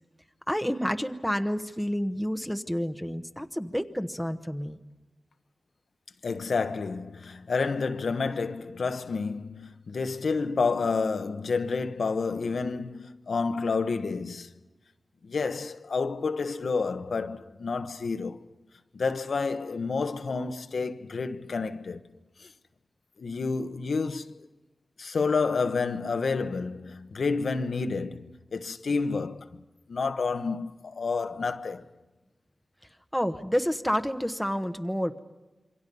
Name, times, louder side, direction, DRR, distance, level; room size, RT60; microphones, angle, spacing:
voice 1, 0.5-4.8 33.1-35.2, equal, ahead, 1.1 m, -29 dB
voice 2, 6.2-14.5 15.2-18.4 18.9-22.0 22.4-22.5 23.2-24.5 25.0-29.5 29.9-31.8, left 4 dB, 80° left, 1.1 m, -29 dB
27.5 x 24.0 x 5.4 m
wide cardioid pair, 80°, 0 cm